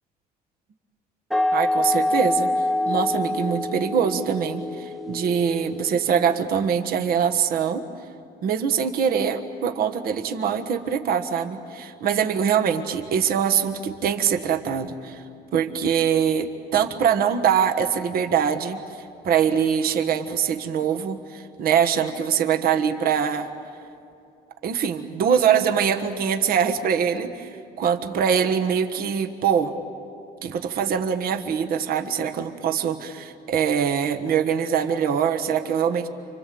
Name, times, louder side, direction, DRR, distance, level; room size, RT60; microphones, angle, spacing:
sound 1, 1.3-6.7, left 1 dB, ahead, 0.7 m, -26 dB
voice 1, 1.5-2.5 2.9-7.8 8.4-15.2 15.5-18.8 19.2-23.5 24.6-27.5 27.8-29.7 30.4-36.1, right 7 dB, 60° right, 6 dB, 1.4 m, -23 dB
29.5 x 25.0 x 7.8 m, 2.4 s
cardioid pair, 110°, 17 cm